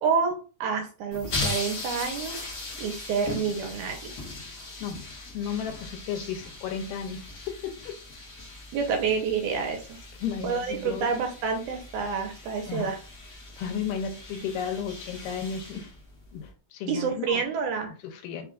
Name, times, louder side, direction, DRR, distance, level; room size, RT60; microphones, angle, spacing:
voice 1, 0.0-2.4 2.8-4.1 8.7-10.0 10.4-13.0 16.9-17.9, right 5 dB, 75° right, 2.2 m, -28 dB
sound 1, 1.1-16.5, left 2 dB, 55° left, 1.0 m, -39 dB
voice 2, 5.3-7.2 7.6-7.9 10.2-11.1 12.7-12.9 13.6-15.9 16.3-17.4 18.0-18.5, left 7 dB, 85° left, 2.4 m, -33 dB
5.4 x 2.4 x 3.6 m
omnidirectional pair, 3.7 m